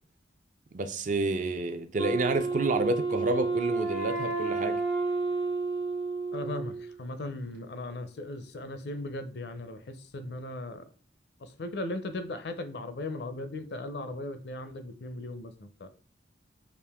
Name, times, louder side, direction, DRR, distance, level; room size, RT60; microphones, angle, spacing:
voice 1, 0.7-4.8, right 2 dB, 40° right, 0.4 m, -29 dB
Wind instrument woodwind instrument, 2.0-7.0, right 3 dB, 65° right, 0.9 m, -30 dB
voice 2, 6.3-10.8 11.4-15.9, left 2 dB, 60° left, 0.5 m, -37 dB
5.0 x 2.5 x 3.4 m
head